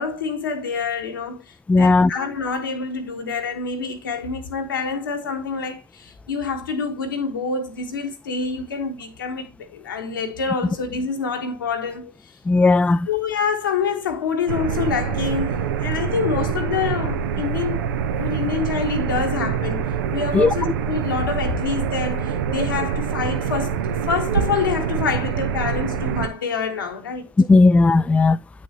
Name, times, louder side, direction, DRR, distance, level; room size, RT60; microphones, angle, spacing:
voice 1, 0.0-12.3 13.1-17.9 18.2-23.8 24.1-27.3, left 5 dB, 85° left, 1.2 m, -26 dB
voice 2, 1.7-2.1 12.5-13.1 20.3-20.5 27.4-28.4, left 3 dB, 10° left, 0.3 m, -15 dB
sound 1, 14.5-26.3, right 7 dB, 80° right, 0.6 m, -25 dB
8.8 x 6.3 x 2.8 m
hypercardioid pair, 60°, 11 cm